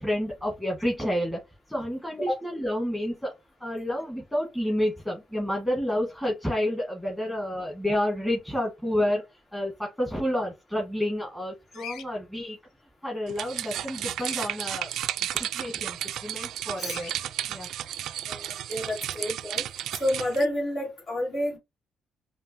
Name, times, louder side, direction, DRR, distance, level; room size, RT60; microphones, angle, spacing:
voice 1, 0.0-1.4 1.7-3.3 3.6-12.6 13.0-14.9 15.3-17.2 17.5-17.7, left 1 dB, 5° left, -2 dB, 1.6 m, -29 dB
Bird vocalization bird call bird song, 11.7-12.1 14.1-14.5 16.8-17.1, left 8 dB, 85° left, 0.5 m, -41 dB
sound 1, 13.3-20.4, right 11 dB, 80° right, 0.3 m, -33 dB
voice 2, 18.3-19.6 20.0-21.6, left 1 dB, 50° left, -3 dB, 2.4 m, -29 dB
5.2 x 2.6 x 2.8 m, 0.21 s
cardioid pair, 90°, 0 cm